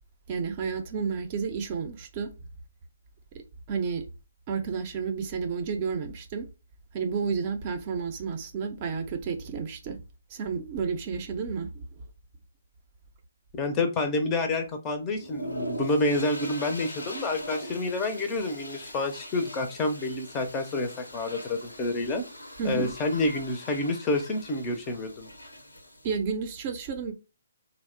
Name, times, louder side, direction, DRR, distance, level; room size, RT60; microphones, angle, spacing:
voice 1, 0.3-2.3 3.7-4.1 4.5-6.5 6.9-10.0 10.3-11.8 22.6-22.9 26.0-27.1, right 5 dB, 35° right, 0.5 m, -31 dB
voice 2, 13.5-22.2 22.6-25.3, left 2 dB, 20° left, 0.5 m, -28 dB
sound 1, 15.2-26.2, equal, 85° left, 0.6 m, -41 dB
2.7 x 2.0 x 2.4 m
figure-of-eight pair, 135°, 0 cm